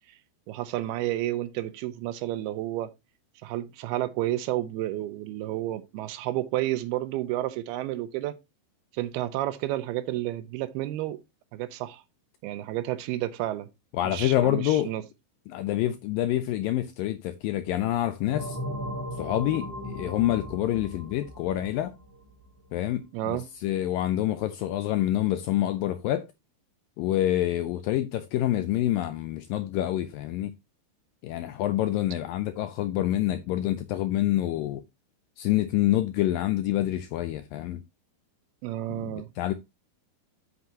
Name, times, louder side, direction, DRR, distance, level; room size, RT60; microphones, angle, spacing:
voice 1, 0.5-2.9 3.4-8.4 8.9-11.2 11.5-12.0 12.4-13.7 14.0-15.0 23.1-23.5 38.6-39.3, right 14 dB, 85° right, 2.6 m, -31 dB
voice 2, 13.9-14.9 15.5-18.6 19.2-21.9 22.7-26.3 27.0-30.5 31.2-34.8 35.4-37.8 38.9-39.5, left 13 dB, 85° left, 2.0 m, -27 dB
sound 1, 18.3-22.7, equal, 35° right, 2.0 m, -37 dB
8.2 x 7.9 x 2.9 m
omnidirectional pair, 4.6 m